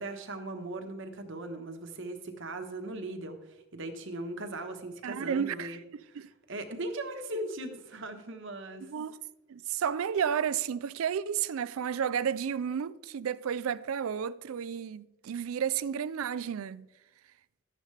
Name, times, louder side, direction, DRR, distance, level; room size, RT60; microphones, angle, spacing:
voice 1, 0.0-3.4 3.7-5.8 6.1-8.9, right 2 dB, 55° right, 1.2 m, -39 dB
voice 2, 5.0-6.3 8.8-9.2 9.5-16.9, right 8 dB, 75° right, 0.4 m, -32 dB
13.0 x 10.0 x 3.3 m
head